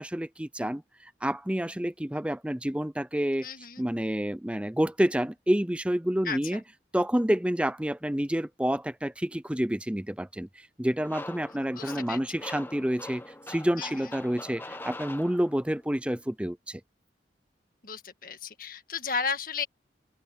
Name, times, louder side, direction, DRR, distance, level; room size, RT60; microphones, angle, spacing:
voice 1, 0.0-3.5 3.8-6.6 6.9-13.2 13.5-16.8, equal, 5° right, 0.5 m, -29 dB
voice 2, 3.4-3.9 6.2-6.6 11.7-12.2 13.7-13.9 17.8-19.7, left 5 dB, 50° left, 1.8 m, -34 dB
sound 1, 11.0-15.8, left 2 dB, 10° left, 0.9 m, -43 dB
open air
head